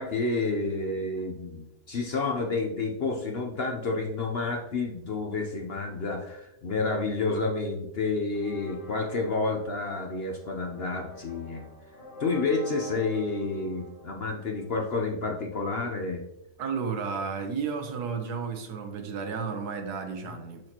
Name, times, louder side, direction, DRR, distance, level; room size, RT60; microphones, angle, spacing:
voice 1, 0.0-11.6 12.2-16.2, left 3 dB, 50° left, 2 dB, 0.8 m, -30 dB
sound 1, 8.3-15.1, equal, 30° left, 2.4 m, -47 dB
voice 2, 16.6-20.6, right 5 dB, 80° right, 6 dB, 1.5 m, -32 dB
6.5 x 6.2 x 2.9 m, 0.84 s
omnidirectional pair, 1.7 m